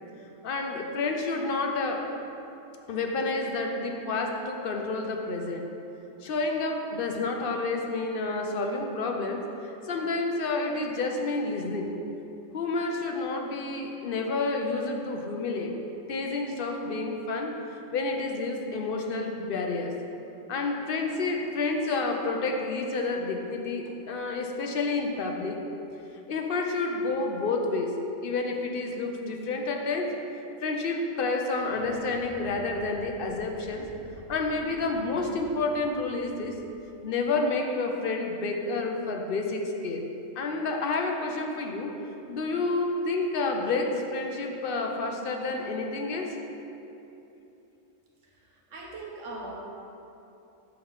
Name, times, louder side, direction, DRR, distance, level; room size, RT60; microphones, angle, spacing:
voice 1, 0.4-2.1 2.9-5.7 6.2-11.9 12.5-15.7 16.1-17.5 17.9-19.9 20.5-25.6 26.3-27.9 28.2-30.1 30.6-33.9 34.3-36.6 37.0-40.0 40.4-42.0 42.3-46.4, left 3 dB, 55° left, 2 dB, 0.7 m, -29 dB
Explosion, 31.6-37.1, left 2 dB, 75° left, 1.1 m, -50 dB
voice 2, 48.2-49.5, right 2 dB, 70° right, -3 dB, 1.3 m, -41 dB
5.7 x 4.4 x 5.5 m, 2.9 s
omnidirectional pair, 1.3 m